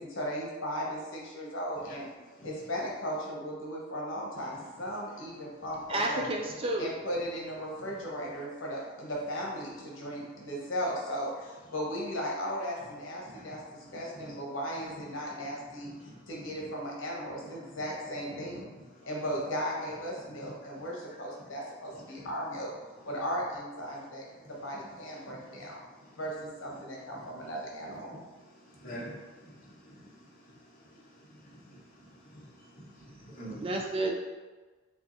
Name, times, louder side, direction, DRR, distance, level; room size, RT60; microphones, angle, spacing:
voice 1, 0.0-2.1 2.4-6.2 6.8-13.6 13.9-18.7 19.1-22.7 23.0-25.8 26.2-28.2, equal, 70° left, -3 dB, 1.1 m, -36 dB
voice 2, 5.9-6.9 33.6-34.1, right 2 dB, 25° right, 1 dB, 0.3 m, -30 dB
voice 3, 15.8-16.3 18.5-18.6 22.2-22.3 25.2-25.3 26.1-26.2 28.7-31.0 31.3-33.6, right 1 dB, 45° left, -5 dB, 1.0 m, -48 dB
5.7 x 2.4 x 2.6 m, 1.3 s
head